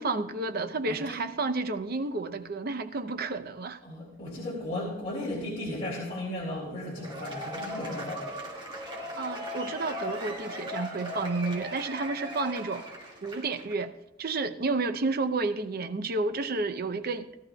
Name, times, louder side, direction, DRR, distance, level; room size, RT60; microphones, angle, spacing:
voice 1, 0.0-3.8 9.2-12.8 13.2-13.9 14.2-17.3, right 3 dB, 50° right, 10 dB, 0.6 m, -31 dB
voice 2, 0.8-1.2 3.8-8.3, left 1 dB, 30° left, -7 dB, 2.7 m, -35 dB
Cheering / Applause / Crowd, 6.9-13.7, equal, 25° right, 1.9 m, -38 dB
17.5 x 12.5 x 2.3 m, 0.91 s
head